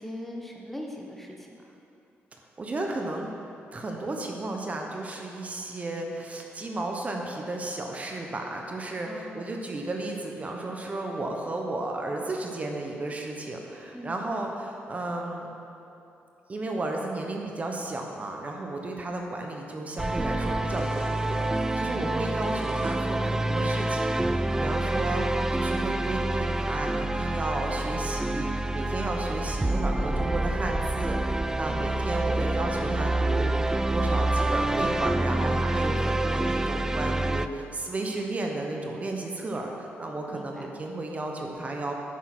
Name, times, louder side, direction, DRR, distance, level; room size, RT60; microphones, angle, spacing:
voice 1, 0.0-1.7 9.0-9.5 13.9-14.2 31.6-32.0 40.3-40.7, left 1 dB, 5° left, 0 dB, 1.1 m, -41 dB
voice 2, 2.6-3.3 3.7-15.5 16.5-41.9, right 2 dB, 30° right, 1 dB, 1.1 m, -33 dB
sound 1, 20.0-37.5, right 2 dB, 10° right, 0.3 m, -27 dB
sound 2, 20.7-23.0 23.5-24.6 25.1-25.2 25.6-25.7 26.1-26.2, left 4 dB, 70° left, 1.1 m, -50 dB
9.5 x 6.4 x 6.1 m, 2.8 s
cardioid pair, 100°, 5 cm